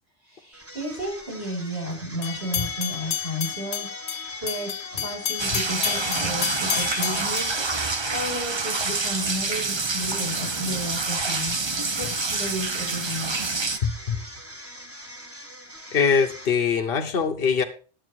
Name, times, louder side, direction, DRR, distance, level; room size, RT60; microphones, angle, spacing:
voice 1, 0.3-7.6 7.9-13.5, right 1 dB, 55° right, -4 dB, 6.9 m, -33 dB
sound 1, 0.5-16.9, equal, 10° right, 1.8 m, -43 dB
sound 2, 2.2-8.5, left 9 dB, 75° left, 1.1 m, -31 dB
sound 3, 5.4-13.8, right 3 dB, 30° right, 0.7 m, -27 dB
voice 2, 13.8-14.2 15.9-17.6, left 6 dB, 55° left, 4 dB, 1.3 m, -22 dB
11.5 x 8.7 x 4.6 m, 0.38 s
omnidirectional pair, 1.2 m